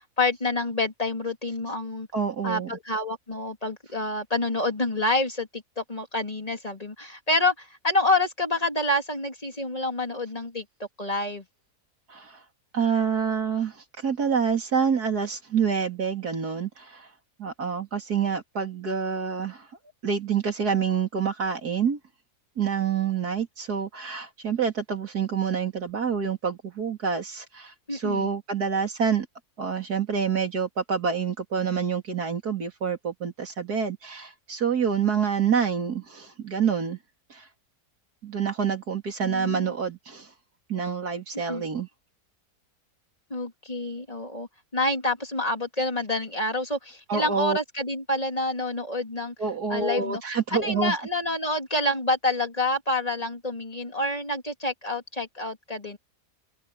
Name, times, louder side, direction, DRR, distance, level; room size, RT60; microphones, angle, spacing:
voice 1, 0.2-2.1 2.4-10.6 11.0-11.4 27.9-28.3 39.2-39.7 41.3-41.6 43.3-49.3 49.7-50.2 50.5-56.0, left 2 dB, 25° left, 3.3 m, -28 dB
voice 2, 2.1-2.7 12.1-12.4 12.7-17.1 17.4-19.7 20.0-22.0 22.6-29.3 29.6-37.0 37.3-37.5 38.2-40.3 40.7-41.9 47.1-47.6 49.4-51.0, right 6 dB, 75° right, 3.6 m, -27 dB
omnidirectional pair, 1.7 m